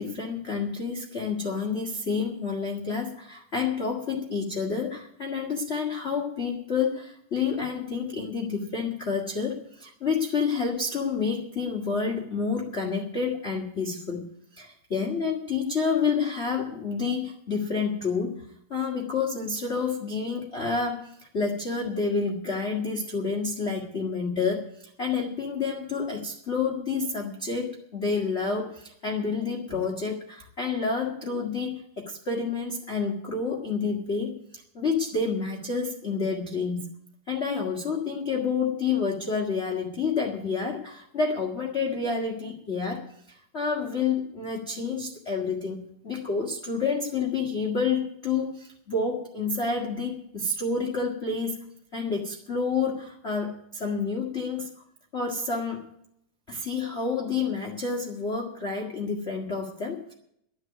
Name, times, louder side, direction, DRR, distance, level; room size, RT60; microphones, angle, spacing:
voice 1, 0.0-14.2 14.5-18.4 18.7-36.8 37.3-51.6 51.9-54.7 55.1-55.8 56.5-60.1, left 5 dB, 30° left, -1 dB, 1.2 m, -29 dB
12.0 x 8.0 x 9.5 m, 0.73 s
omnidirectional pair, 3.6 m